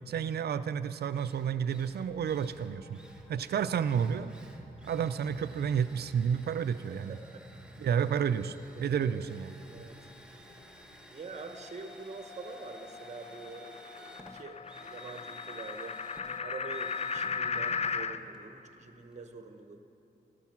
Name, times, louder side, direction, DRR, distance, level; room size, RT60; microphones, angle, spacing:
voice 1, 0.1-3.0 3.3-4.3 4.9-7.2 7.8-9.5, right 7 dB, 75° right, 12 dB, 0.4 m, -31 dB
Drill, 1.1-19.3, equal, 5° right, 1.3 m, -54 dB
sound 1, 1.6-12.9, left 1 dB, 75° left, 3.6 m, -57 dB
voice 2, 7.1-7.4 8.8-9.1 9.7-10.0 11.1-16.0 16.4-19.8, right 4 dB, 45° right, 6 dB, 1.0 m, -45 dB
sound 2, 11.5-18.2, left 5 dB, 40° left, 0.5 m, -37 dB
13.5 x 13.0 x 6.0 m, 2.7 s
cardioid pair, 85°, 16 cm